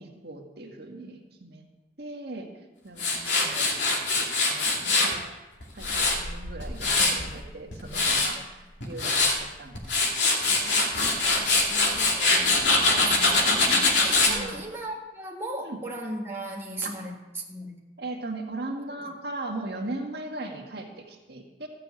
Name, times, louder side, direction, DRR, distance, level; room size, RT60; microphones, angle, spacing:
voice 1, 0.0-1.6 2.0-2.5 2.8-5.4 5.7-10.0 14.3-14.6 15.6-15.8 16.8-16.9 18.0-21.7, right 2 dB, 60° right, 1 dB, 1.8 m, -38 dB
Tools, 3.0-5.1 5.6-7.3 7.7-8.3 8.8-9.4 9.8-14.3, left 3 dB, 80° left, 2.5 m, -23 dB
voice 2, 3.2-3.7 7.8-8.4 10.5-17.8 19.0-19.1, right 2 dB, 15° right, -3 dB, 1.6 m, -38 dB
14.0 x 6.8 x 8.7 m, 1.1 s
head